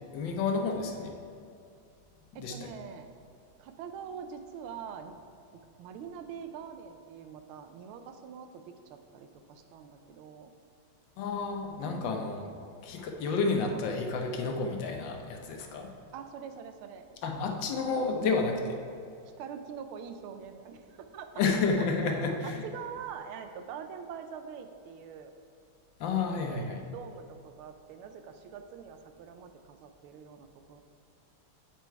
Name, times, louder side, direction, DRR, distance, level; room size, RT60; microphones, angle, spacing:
voice 1, 0.1-1.1 2.4-2.5 11.2-12.4 12.8-15.9 17.2-18.8 21.3-22.6 26.0-26.8, left 4 dB, 70° left, 3 dB, 1.3 m, -30 dB
voice 2, 2.3-3.1 3.6-5.2 5.8-10.5 11.8-12.2 16.1-17.2 19.4-25.3 26.2-30.8, right 7 dB, 85° right, 8 dB, 1.4 m, -44 dB
7.7 x 4.5 x 4.5 m, 2.5 s
omnidirectional pair, 2.3 m